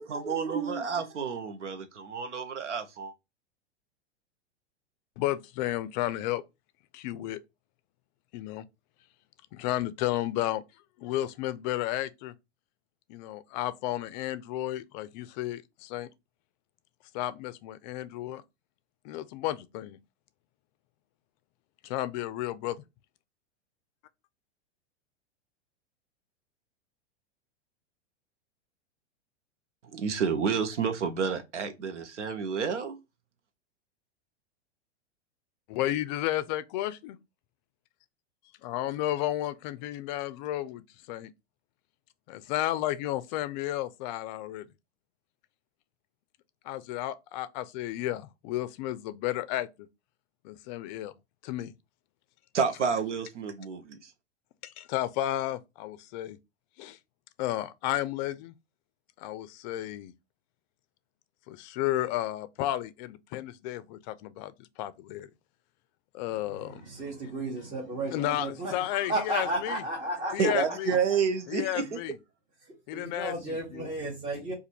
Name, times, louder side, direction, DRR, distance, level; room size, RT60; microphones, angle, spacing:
voice 1, 0.0-3.1 29.9-33.0 52.5-54.1 70.4-72.0, right 6 dB, 90° right, 0.8 m, -30 dB
voice 2, 5.2-6.4 6.9-7.4 8.3-8.6 9.5-10.6 11.0-12.3 13.1-16.1 17.1-18.4 19.0-20.0 21.8-22.8 35.7-37.2 38.6-41.3 42.3-44.7 46.6-49.7 50.4-51.1 51.4-51.7 54.6-56.4 56.8-57.0 57.4-58.5 59.2-60.1 61.5-64.5 64.8-65.3 66.1-66.8 68.1-69.7 70.3-71.0 71.5-72.2 72.9-73.9, left 14 dB, 40° left, 0.4 m, -32 dB
voice 3, 66.5-71.0 72.6-74.5, right 1 dB, 20° right, 1.1 m, -34 dB
2.5 x 2.5 x 4.2 m
hypercardioid pair, 115°, 34 cm